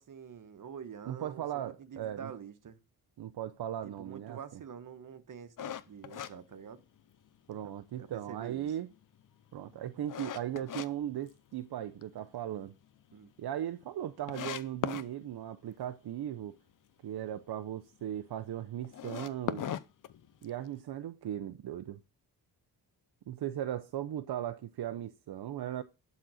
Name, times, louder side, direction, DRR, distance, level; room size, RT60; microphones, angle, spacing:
voice 1, 0.0-2.8 3.8-6.8 8.0-8.7 13.1-13.3, right 7 dB, 50° right, 1.3 m, -47 dB
voice 2, 1.1-2.3 3.2-4.6 7.5-8.9 9.5-12.7 13.4-16.6 17.0-19.7 20.4-22.0 23.3-25.8, right 11 dB, 70° right, 0.7 m, -38 dB
sound 1, 5.6-7.3 7.7-7.8 8.3-10.9 11.3-12.0 12.4-12.5 12.8-12.9 13.1-13.2 13.8-13.9 14.3-15.1 18.8-20.7, left 9 dB, 50° left, 0.7 m, -38 dB
11.5 x 4.2 x 6.2 m
wide cardioid pair, 125°, 40 cm